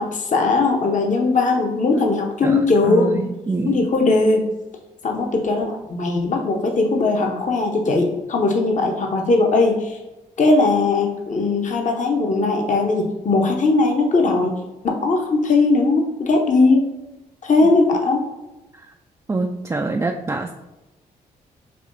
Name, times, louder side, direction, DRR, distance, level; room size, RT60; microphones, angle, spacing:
voice 1, 0.0-3.3 3.7-4.5 5.0-10.0 10.4-14.5 14.8-16.9 17.4-18.2, left 3 dB, 40° left, 2 dB, 0.7 m, -19 dB
voice 2, 2.4-3.9 19.3-20.5, right 3 dB, 15° right, 2 dB, 0.3 m, -25 dB
5.6 x 2.8 x 2.6 m, 1.0 s
hypercardioid pair, 45°, 19 cm